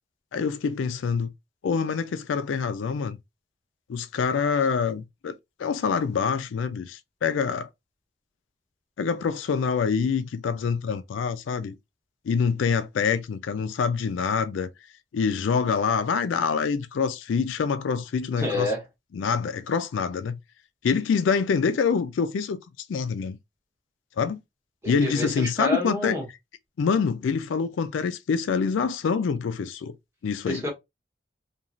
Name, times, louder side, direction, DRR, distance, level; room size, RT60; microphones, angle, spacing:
voice 1, 0.3-1.3 1.6-3.2 3.9-7.7 9.0-11.8 12.3-14.7 15.1-18.7 19.1-20.4 20.8-22.6 22.9-23.4 24.2-24.4 24.9-26.2 26.8-29.9 30.2-30.6, left 5 dB, 90° left, 0.4 m, -26 dB
voice 2, 18.4-18.8 24.8-26.2 30.5-30.7, left 1 dB, 15° right, 1.1 m, -28 dB
3.0 x 2.3 x 2.4 m
head